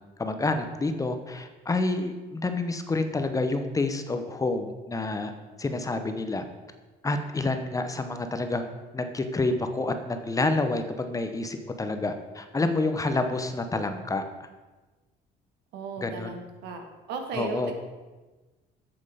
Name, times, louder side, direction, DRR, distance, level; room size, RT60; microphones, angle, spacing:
voice 1, 0.2-5.3 5.6-6.4 7.0-8.7 8.9-14.2 16.0-16.3 17.4-17.7, left 2 dB, 20° left, 7 dB, 0.8 m, -28 dB
voice 2, 15.7-16.8 17.1-17.7, right 4 dB, 80° right, 5 dB, 1.5 m, -35 dB
8.1 x 7.9 x 5.0 m, 1.2 s
cardioid pair, 110°, 17 cm